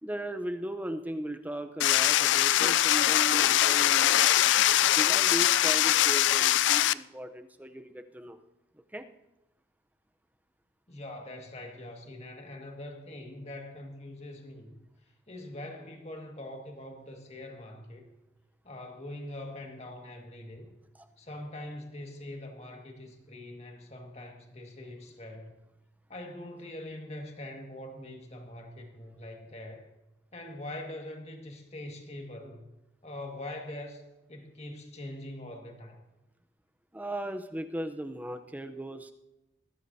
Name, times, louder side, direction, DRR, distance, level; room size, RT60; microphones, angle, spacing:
voice 1, 0.0-4.1 4.8-8.4 8.9-9.0 20.9-21.1 36.9-39.1, right 1 dB, 10° right, 7 dB, 0.7 m, -37 dB
sound 1, 1.8-6.9, left 13 dB, 90° left, 0.3 m, -23 dB
voice 2, 10.9-14.7 15.3-18.1 18.6-20.7 21.2-25.5 26.1-29.9 30.3-32.6 33.0-34.0 34.3-36.0, left 1 dB, 35° left, 2 dB, 1.9 m, -43 dB
21.0 x 14.0 x 2.8 m, 0.97 s
head